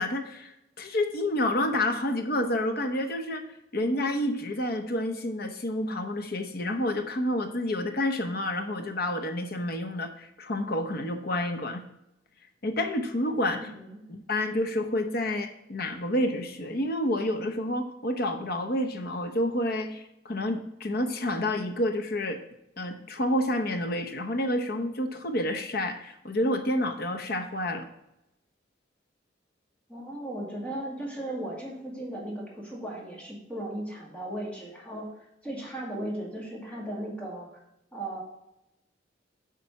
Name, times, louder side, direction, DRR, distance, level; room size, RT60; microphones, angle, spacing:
voice 1, 0.0-3.4 3.7-11.8 12.6-13.7 14.1-22.4 22.8-27.9, left 1 dB, 55° left, 6 dB, 0.9 m, -29 dB
voice 2, 13.5-14.0 29.9-35.1 35.4-37.6 37.9-38.2, right 1 dB, 5° left, -3 dB, 2.0 m, -36 dB
8.5 x 4.2 x 5.8 m, 0.86 s
head